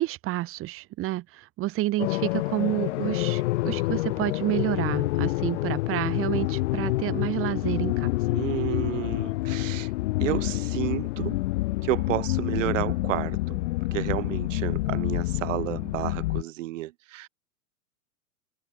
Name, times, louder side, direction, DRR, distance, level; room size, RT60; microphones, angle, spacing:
voice 1, 0.0-8.1, right 16 dB, 30° right, 4.3 m, -29 dB
sound 1, 2.0-16.4, left 19 dB, 50° left, 4.7 m, -27 dB
voice 2, 8.3-9.9 10.2-11.4 11.8-13.6 13.9-17.3, right 16 dB, 60° right, 4.9 m, -31 dB
hypercardioid pair, 140°, 43 cm